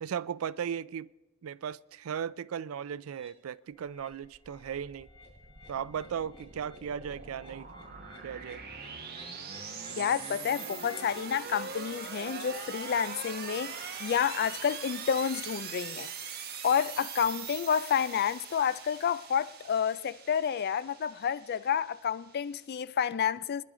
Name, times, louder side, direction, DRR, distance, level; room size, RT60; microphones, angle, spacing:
voice 1, 0.0-1.1 1.4-5.1 5.7-7.7 8.2-8.6, right 8 dB, 85° right, 0.4 m, -36 dB
sound 1, 3.1-3.3 3.8-4.1 4.4-11.1, left 2 dB, 30° left, 3.7 m, -55 dB
sound 2, 4.3-22.6, right 6 dB, 50° right, 1.4 m, -42 dB
voice 2, 10.0-16.1 16.6-23.6, left 7 dB, 50° left, 0.4 m, -30 dB
24.5 x 10.5 x 3.8 m
head